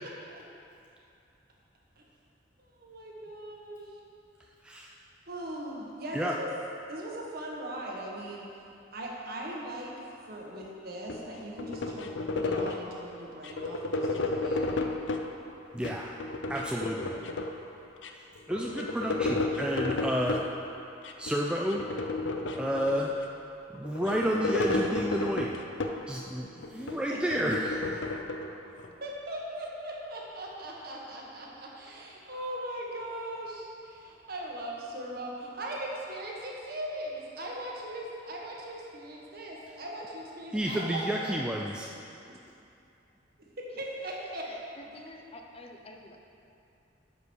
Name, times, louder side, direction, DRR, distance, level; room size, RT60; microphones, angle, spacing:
voice 1, 0.0-0.4 2.0-2.1 2.6-3.9 5.3-6.5 6.9-8.5 8.9-9.9 10.3-14.7 27.1-27.2 29.0-42.3 43.6-44.5, right 1 dB, 55° right, -2 dB, 1.5 m, -39 dB
voice 2, 4.6-4.9 6.1-6.4 15.7-16.2 16.5-17.1 18.1-20.4 21.2-21.8 22.5-23.1 23.7-25.6 26.1-28.0 40.5-41.9, equal, 5° right, -2 dB, 0.4 m, -31 dB
sound 1, 11.1-13.0 13.4-15.3 15.7-17.7 18.0-18.1 18.4-20.5 21.0-21.3 21.7-23.3 23.7-26.2 26.6-28.9, left 2 dB, 85° left, 0.6 m, -32 dB
voice 3, 44.4-46.2, left 1 dB, 35° left, 2 dB, 0.7 m, -48 dB
9.7 x 5.3 x 6.3 m, 2.6 s
head